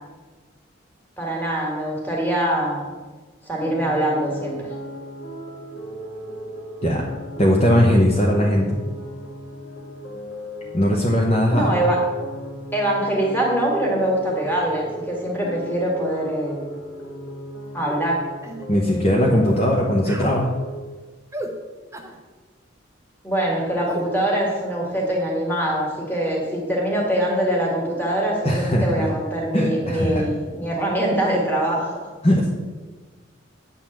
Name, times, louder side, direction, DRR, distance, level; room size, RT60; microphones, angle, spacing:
voice 1, 1.2-2.9 3.5-4.7 11.5-12.0 12.7-16.7 17.7-18.2 23.2-32.1, right 1 dB, 10° left, -2 dB, 1.9 m, -23 dB
sound 1, 3.6-20.7, equal, 80° left, 1.9 m, -36 dB
voice 2, 7.4-8.7 10.7-11.7 18.7-20.5 28.4-29.1 29.5-30.3 32.2-32.5, equal, 30° left, -2 dB, 0.9 m, -19 dB
sound 2, 17.9-18.0 18.4-18.6 19.4-19.7 20.0-20.4 21.3-21.5 21.9-22.2 23.9-24.1, right 1 dB, 15° right, 0.6 m, -35 dB
9.0 x 4.0 x 7.2 m, 1.3 s
head